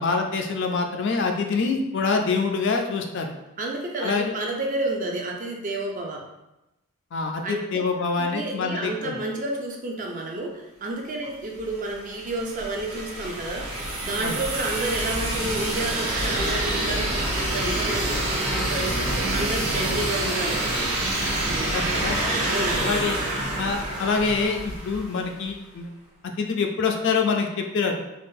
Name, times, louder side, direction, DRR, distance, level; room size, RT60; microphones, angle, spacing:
voice 1, 0.0-3.3 4.0-4.3 7.1-9.2 14.2-14.4 21.7-22.2 22.8-23.2 23.6-25.9 26.4-28.0, left 4 dB, 55° left, 3 dB, 0.3 m, -25 dB
voice 2, 3.6-6.3 7.4-7.7 8.2-13.7 14.0-20.7 22.4-23.0, right 2 dB, 35° right, 1 dB, 0.4 m, -30 dB
sound 1, 11.6-25.4, right 1 dB, 75° right, 0.9 m, -27 dB
3.4 x 2.3 x 2.6 m, 0.95 s
head